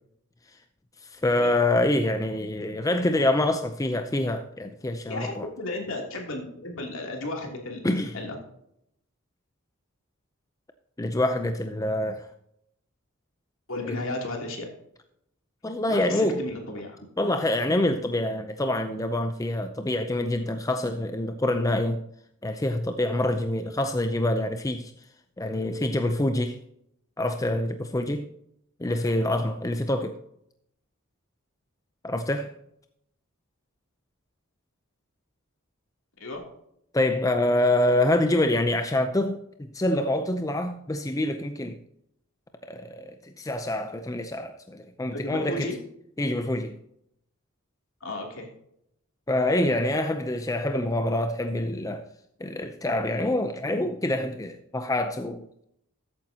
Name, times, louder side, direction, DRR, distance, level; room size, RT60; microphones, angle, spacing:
voice 1, 1.0-5.5 7.8-8.2 11.0-12.3 13.8-13.9 15.6-16.4 17.2-22.0 22.4-24.9 25.4-26.6 27.2-28.3 28.8-30.2 32.0-32.5 36.9-41.8 42.7-45.7 46.2-46.8 49.3-52.1 52.4-55.5, left 1 dB, 15° left, 0.5 m, -26 dB
voice 2, 5.1-7.8 8.1-8.4 13.7-14.7 15.9-17.0 36.2-36.5 45.1-45.8 48.0-48.5, left 2 dB, 65° left, 3.0 m, -34 dB
13.5 x 9.0 x 2.8 m
head